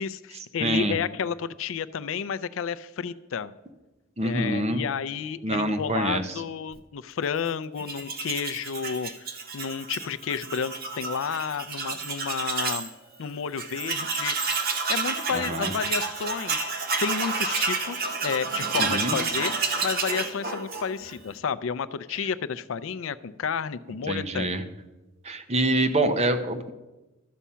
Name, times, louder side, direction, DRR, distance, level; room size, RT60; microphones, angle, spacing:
voice 1, 0.0-3.5 4.2-12.9 13.2-14.6 14.9-24.5, left 6 dB, 75° left, 15 dB, 0.4 m, -31 dB
voice 2, 0.6-1.0 4.2-4.8 5.4-6.2 15.3-15.7 18.8-19.2 22.2-22.3 24.1-24.6 25.2-26.7, right 1 dB, 30° right, 8 dB, 0.8 m, -26 dB
Tools, 7.8-12.9 13.2-13.3 13.6-21.2, right 4 dB, 50° right, 1.1 m, -30 dB
12.5 x 7.2 x 5.6 m, 1.1 s
head